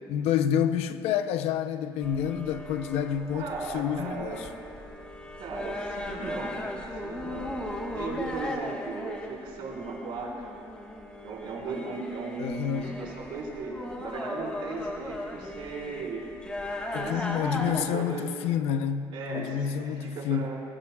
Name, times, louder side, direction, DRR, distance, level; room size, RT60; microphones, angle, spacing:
voice 1, 0.1-4.5 12.4-13.0 16.9-20.6, left 9 dB, 75° left, 0.7 m, -29 dB
sound 1, 2.0-17.8, left 1 dB, 10° left, 1.4 m, -37 dB
voice 2, 3.3-4.5 5.4-6.6 7.0-10.5 11.2-16.2 16.9-18.3 19.1-20.6, right 3 dB, 55° right, 4.7 m, -37 dB
23.5 x 21.0 x 2.4 m
cardioid pair, 170°, 11 cm